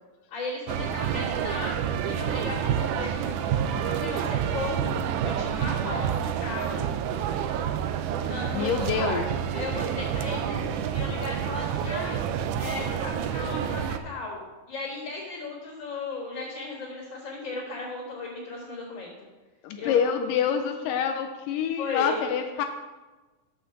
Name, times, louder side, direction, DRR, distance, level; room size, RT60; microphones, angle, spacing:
voice 1, 0.3-4.9 5.2-6.8 8.2-12.2 12.6-14.4 14.7-19.3 19.8-20.1 21.8-22.2, left 3 dB, 50° left, -9 dB, 4.0 m, -36 dB
sound 1, 0.7-14.0, right 9 dB, 80° right, 1.9 m, -28 dB
voice 2, 8.5-9.3 19.6-22.6, left 8 dB, 80° left, 6 dB, 2.1 m, -26 dB
8.3 x 5.8 x 7.1 m, 1.2 s
omnidirectional pair, 4.0 m